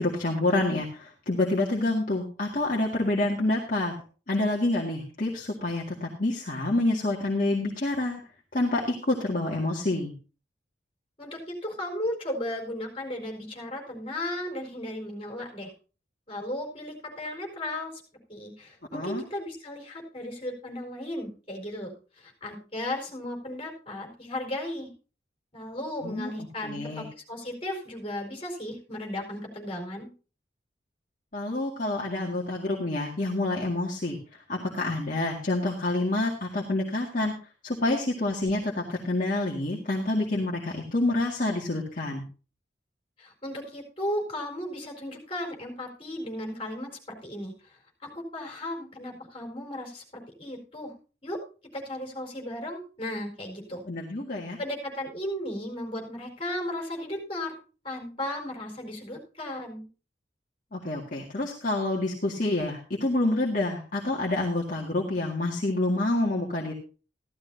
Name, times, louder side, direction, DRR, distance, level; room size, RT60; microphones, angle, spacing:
voice 1, 0.0-3.9 4.3-8.2 8.5-10.1 18.9-19.2 26.0-26.3 26.6-27.0 31.3-34.2 34.5-37.3 37.6-42.3 53.9-54.6 60.7-66.7, left 2 dB, 50° left, -2 dB, 2.0 m, -27 dB
voice 2, 11.2-15.7 16.3-17.9 18.3-24.9 25.5-30.1 43.2-50.9 51.2-51.4 51.7-53.8 54.6-57.5 57.8-59.9, left 1 dB, 30° left, 1 dB, 4.6 m, -35 dB
15.5 x 13.0 x 2.7 m, 0.35 s
head